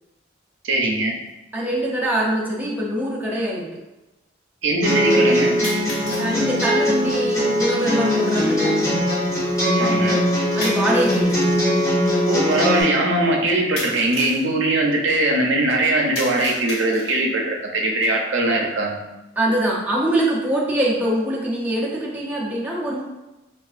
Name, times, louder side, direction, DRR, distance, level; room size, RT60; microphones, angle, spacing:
voice 1, 0.6-1.2 4.6-5.6 9.6-10.2 12.3-19.0, right 2 dB, 70° right, 0 dB, 0.6 m, -21 dB
sound 1, 1.3-1.4 2.3-2.4 5.6-6.3 10.6-11.5 13.8-14.5 16.1-17.3, left 1 dB, 60° left, 1.3 m, -33 dB
voice 2, 1.5-3.7 6.2-8.9 10.5-11.6 19.4-23.0, right 1 dB, 10° right, -5 dB, 0.6 m, -23 dB
sound 2, 4.8-12.8, equal, 15° left, 1.2 m, -20 dB
4.5 x 2.4 x 2.4 m, 1.0 s
head